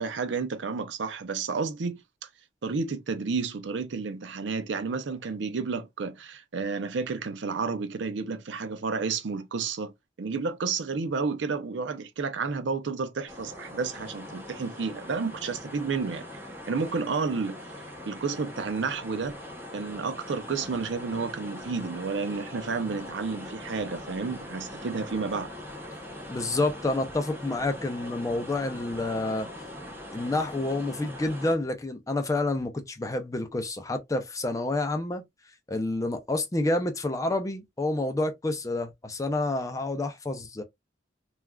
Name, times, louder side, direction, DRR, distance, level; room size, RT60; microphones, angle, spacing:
voice 1, 0.0-2.0 2.6-9.9 10.2-16.3 16.7-17.6 18.1-19.4 19.7-25.5, right 4 dB, 75° right, 0.5 m, -31 dB
sound 1, 13.3-31.5, left 1 dB, 15° right, 0.8 m, -42 dB
voice 2, 26.3-29.5 30.1-35.2 35.7-40.6, left 2 dB, 20° left, 0.5 m, -29 dB
3.3 x 2.3 x 2.3 m
head